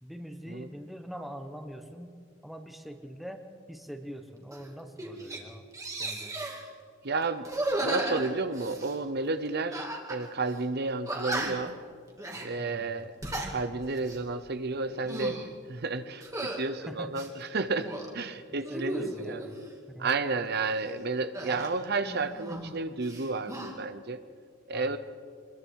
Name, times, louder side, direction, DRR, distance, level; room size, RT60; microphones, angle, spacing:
voice 1, 0.0-2.2 2.4-5.6 6.0-6.4 12.6-12.9 16.8-17.1 18.5-19.6 19.9-20.4 24.7-25.0, equal, ahead, 6 dB, 1.3 m, -43 dB
sound 1, 4.5-4.7 5.0-5.4 5.7-6.6 7.4-9.0 9.7-10.2 10.5-10.6 11.1-11.7 12.2-12.5 13.0-13.5 14.0-14.2 14.9-15.5 16.2-16.6 17.1-18.1 18.6-19.5 21.3-22.8 23.0-23.7, right 1 dB, 15° right, 2.4 m, -35 dB
voice 2, 7.0-7.5 7.8-11.8 12.4-13.1 13.5-15.4 15.7-16.2 16.6-19.4 20.0-24.2 24.7-25.0, right 3 dB, 55° right, 11 dB, 0.8 m, -31 dB
25.0 x 22.0 x 4.7 m, 2.1 s
head